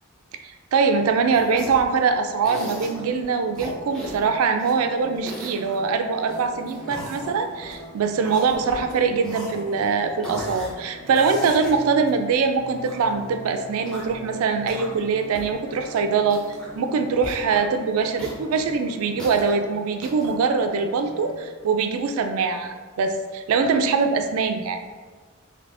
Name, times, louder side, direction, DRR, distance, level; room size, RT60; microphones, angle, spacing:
voice 1, 0.4-24.8, right 5 dB, 85° right, 7 dB, 0.3 m, -23 dB
sound 1, 1.3-1.9 2.4-3.1 3.5-4.8 5.1-5.8 6.3-7.8 8.2-8.9 9.2-9.9 10.2-10.7 11.1-13.0 13.7-14.2 14.6-15.1 15.3-15.5 15.8-15.9 16.2-16.7 17.2-17.6 18.2-19.6 20.0-20.3, equal, 5° left, 0.4 m, -38 dB
sound 2, 2.7-21.4, equal, 50° left, 0.6 m, -42 dB
3.3 x 2.8 x 2.6 m, 1.4 s
head